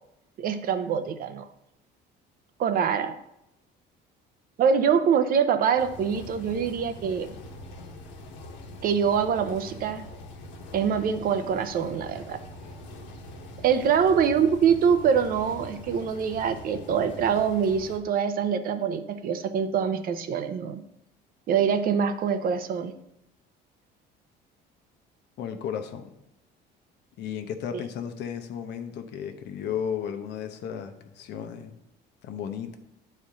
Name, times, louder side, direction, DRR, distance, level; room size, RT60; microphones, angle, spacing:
voice 1, 0.4-1.5 2.6-3.1 4.6-7.3 8.8-10.0 10.7-12.4 13.6-20.8 21.5-22.9, right 7 dB, 50° right, 10 dB, 0.7 m, -24 dB
sound 1, 5.8-18.0, left 1 dB, 85° left, 1.4 m, -43 dB
voice 2, 25.4-26.1 27.2-31.8 32.2-32.8, left 8 dB, 65° left, 6 dB, 0.9 m, -34 dB
9.9 x 4.3 x 3.8 m, 0.84 s
cardioid pair, 130°, 19 cm